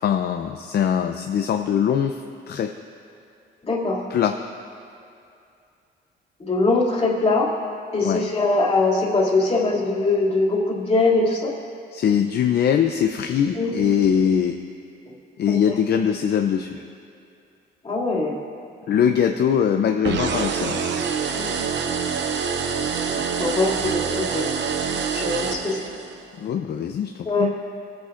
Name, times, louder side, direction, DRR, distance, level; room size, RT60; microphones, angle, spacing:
voice 1, 0.0-2.2 2.5-2.7 4.1-4.4 8.0-8.2 11.9-14.6 15.4-16.8 18.9-20.9 26.4-27.5, left 8 dB, 55° left, 5 dB, 0.5 m, -22 dB
voice 2, 3.7-4.1 6.4-7.5 7.9-11.5 13.6-13.7 15.5-15.7 17.8-18.4 21.3-21.5 23.1-24.5 25.1-25.8 27.3-27.5, left 3 dB, 30° left, -4 dB, 2.5 m, -22 dB
sound 1, 20.0-26.2, right 6 dB, 65° right, 0.8 m, -26 dB
22.5 x 8.3 x 2.5 m, 2.5 s
cardioid pair, 90°, 20 cm